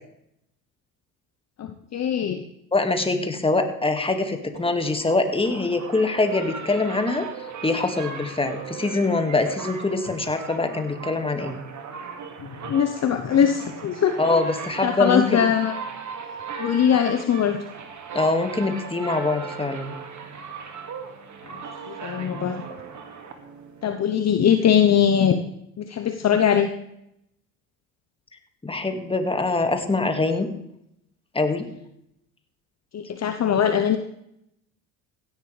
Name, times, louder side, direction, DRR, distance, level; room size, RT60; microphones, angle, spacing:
voice 1, 1.6-2.4 12.4-14.2 14.8-15.7 16.6-17.6 21.4-21.6 21.9-22.6 23.8-25.4 25.8-26.7 32.9-34.0, left 8 dB, 35° left, 7 dB, 1.0 m, -21 dB
voice 2, 2.7-7.3 7.6-11.6 14.2-15.4 18.1-19.9 28.6-30.5 31.3-31.7, left 3 dB, 10° left, 6 dB, 2.1 m, -24 dB
sound 1, 4.5-23.9, right 6 dB, 40° right, 2.3 m, -38 dB
16.0 x 11.0 x 3.4 m, 0.78 s
hypercardioid pair, 65°, 43 cm